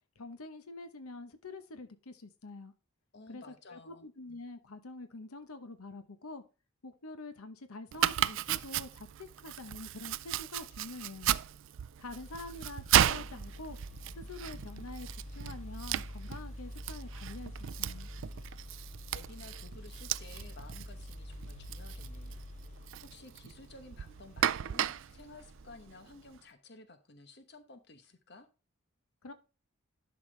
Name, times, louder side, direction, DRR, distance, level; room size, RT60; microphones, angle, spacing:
voice 1, 0.2-2.7 3.3-6.4 6.8-11.3 12.0-13.8 14.1-17.5 17.8-18.1 29.2-29.3, left 2 dB, 90° left, 10 dB, 1.0 m, -46 dB
voice 2, 3.1-4.1 19.1-22.4 23.0-28.5, left 3 dB, 50° left, 9 dB, 1.0 m, -53 dB
Domestic sounds home sounds, 7.9-26.4, right 11 dB, 60° right, 0.3 m, -35 dB
sound 1, 12.1-25.8, equal, 35° left, 1.0 m, -47 dB
11.0 x 5.9 x 3.3 m, 0.32 s
head